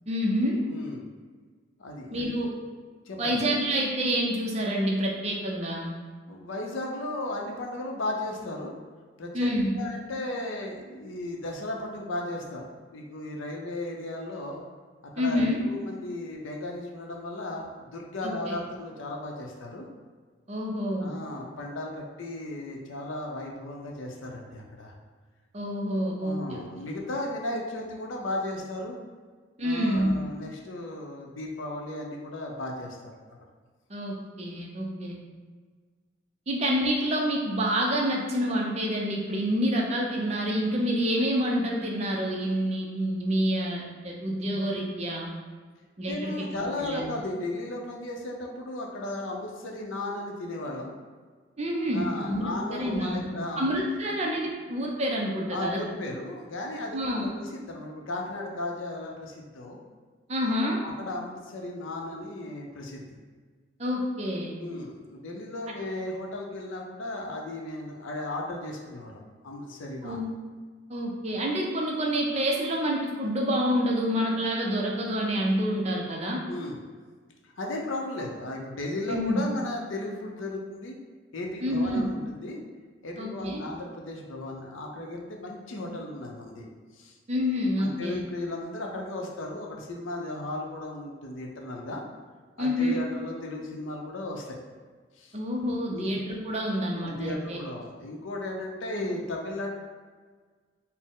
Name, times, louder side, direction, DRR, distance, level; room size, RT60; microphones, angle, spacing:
voice 1, 0.1-0.6 2.1-2.5 3.2-5.9 9.3-9.8 15.2-15.6 18.2-18.5 20.5-21.1 25.5-26.6 29.6-30.1 33.9-35.2 36.5-45.3 46.0-46.5 46.8-47.1 51.6-53.3 53.6-55.8 56.9-57.3 60.3-60.8 63.8-64.5 70.0-70.3 70.9-76.4 79.1-79.4 81.6-82.1 83.2-83.6 87.3-88.3 92.6-93.0 95.3-97.6 98.9-99.0, equal, 30° right, -1 dB, 0.5 m, -28 dB
voice 2, 0.7-1.1 1.8-2.3 3.1-3.4 6.3-8.7 9.2-14.6 15.1-19.9 21.0-24.9 26.2-29.0 29.6-33.1 46.1-50.9 51.8-53.7 55.5-57.0 57.4-59.8 60.8-63.0 64.6-70.2 76.5-76.8 77.4-81.0 81.3-82.6 83.0-86.7 86.9-87.2 87.8-92.0 92.6-94.6 95.2-95.4 95.9-96.2 97.0-99.7, left 2 dB, 80° left, 0 dB, 0.5 m, -35 dB
4.1 x 2.0 x 3.7 m, 1.5 s
head